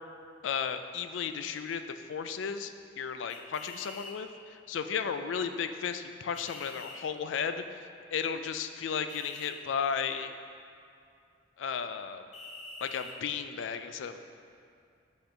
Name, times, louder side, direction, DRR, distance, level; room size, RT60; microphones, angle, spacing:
voice 1, 0.4-10.3 11.6-12.2 12.8-14.2, left 6 dB, 75° left, 9 dB, 0.4 m, -34 dB
sound 1, 3.3-4.1 6.3-7.0 9.1-9.5 12.3-13.2, left 3 dB, 35° left, 0.7 m, -46 dB
5.5 x 4.4 x 5.0 m, 2.4 s
head